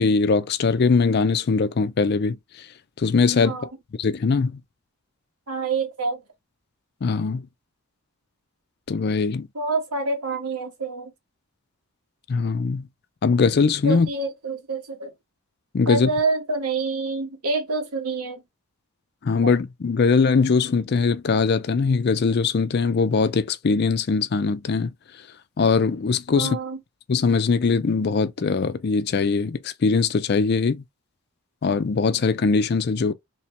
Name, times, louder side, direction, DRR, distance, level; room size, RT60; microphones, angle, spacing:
voice 1, 0.0-2.4 3.0-3.6 4.0-4.6 7.0-7.5 8.9-9.5 12.3-12.9 13.2-14.1 15.7-16.1 19.2-24.9 25.6-26.6 27.1-30.8 31.6-33.1, left 4 dB, 45° left, 0.4 m, -21 dB
voice 2, 5.5-6.2 9.5-11.1 13.8-15.1 15.9-18.4 19.4-19.5 26.3-26.8, right 3 dB, 90° right, 1.3 m, -27 dB
3.0 x 2.9 x 3.2 m
head